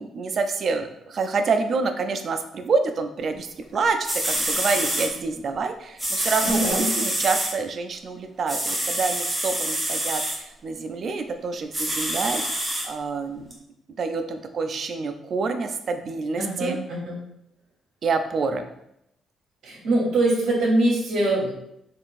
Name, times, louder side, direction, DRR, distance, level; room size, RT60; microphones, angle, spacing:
voice 1, 0.0-4.0 4.2-13.5 14.0-16.8 18.0-18.6, right 4 dB, 50° right, 6 dB, 0.3 m, -27 dB
sound 1, 3.7-3.8 4.0-5.1 6.0-7.5 8.5-10.4 11.7-12.9 13.5-13.6, right 1 dB, 10° right, 0.7 m, -26 dB
voice 2, 6.4-6.9 16.3-17.2 19.6-21.5, right 1 dB, 70° right, -2 dB, 0.8 m, -23 dB
3.6 x 2.4 x 2.5 m, 0.78 s
cardioid pair, 90°, 0 cm